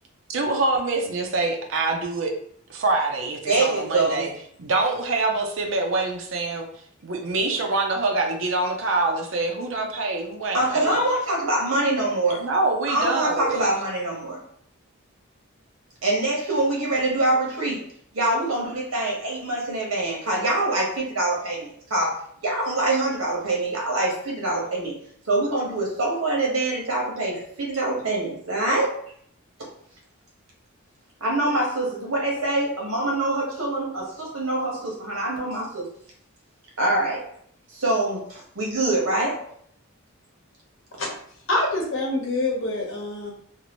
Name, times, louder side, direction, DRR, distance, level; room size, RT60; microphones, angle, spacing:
voice 1, 0.3-2.3 2.7-4.3 4.6-6.7 7.0-11.0 12.4-13.7, right 3 dB, 60° right, 2 dB, 0.5 m, -25 dB
voice 2, 3.5-4.3 10.5-12.4 12.9-14.4 16.0-17.8 18.1-24.9 25.3-28.9 29.6-29.7 31.2-35.9 36.8-37.2 37.7-39.5, right 2 dB, 75° right, -3 dB, 1.1 m, -24 dB
voice 3, 41.5-43.3, left 2 dB, 60° left, 0 dB, 0.8 m, -25 dB
2.7 x 2.5 x 2.9 m, 0.63 s
head